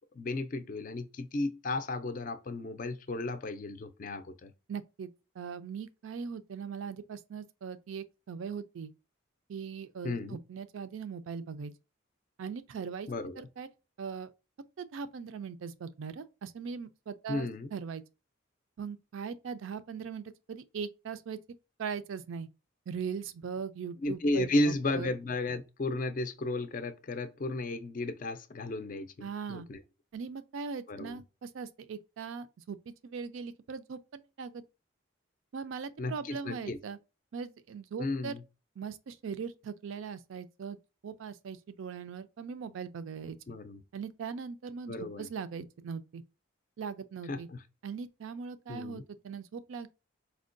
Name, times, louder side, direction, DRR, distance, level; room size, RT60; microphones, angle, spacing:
voice 1, 0.1-4.5 10.0-10.4 13.1-13.5 17.3-17.7 24.0-29.8 30.9-31.2 36.0-36.8 38.0-38.4 43.5-43.8 44.9-45.3 47.3-47.6 48.7-49.0, left 2 dB, 40° left, 0.4 m, -34 dB
voice 2, 4.7-5.1 5.4-8.9 9.5-11.7 12.4-13.1 13.4-13.7 14.0-14.3 14.8-18.0 18.8-21.4 21.8-22.5 22.9-25.1 29.2-29.7 30.1-32.8 33.0-34.6 35.5-37.0 37.3-38.4 38.8-40.8 41.0-43.4 43.9-46.2 46.8-47.5 47.8-49.9, right 6 dB, 75° right, 0.4 m, -40 dB
4.3 x 2.2 x 2.5 m
head